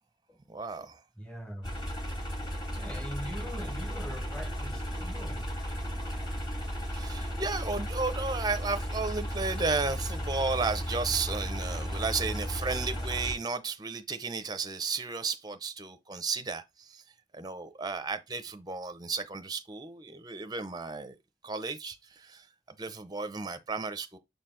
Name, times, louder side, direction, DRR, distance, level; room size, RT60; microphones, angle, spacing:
voice 1, 0.5-1.0 6.9-17.0 17.3-21.2 21.4-24.2, right 4 dB, 25° right, 0.6 m, -33 dB
voice 2, 1.2-1.8 2.8-5.5, equal, 5° left, 1.2 m, -42 dB
sound 1, 1.6-13.3, equal, 25° left, 2.3 m, -34 dB
6.8 x 4.5 x 3.8 m
head